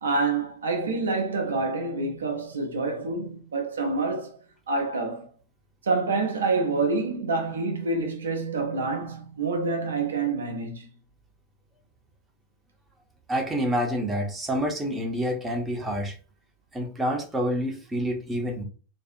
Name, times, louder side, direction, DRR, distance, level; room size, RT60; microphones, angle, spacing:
voice 1, 0.0-4.4 4.7-5.3 5.8-10.9, right 3 dB, 70° right, 0.5 m, -27 dB
voice 2, 13.3-16.2 16.7-18.6, equal, 10° right, 0.7 m, -28 dB
2.5 x 2.3 x 2.6 m
figure-of-eight pair, 90°, 0 cm